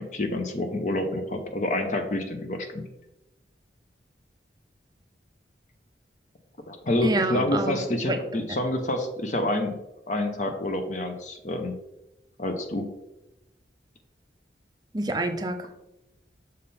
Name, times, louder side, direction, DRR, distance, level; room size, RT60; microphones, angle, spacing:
voice 1, 0.0-2.9 6.7-9.8 10.1-11.7 12.4-12.9, left 1 dB, 45° left, 5 dB, 0.6 m, -28 dB
voice 2, 7.0-8.2 14.9-15.7, right 2 dB, 20° right, 6 dB, 0.5 m, -27 dB
6.5 x 3.6 x 4.1 m, 0.93 s
head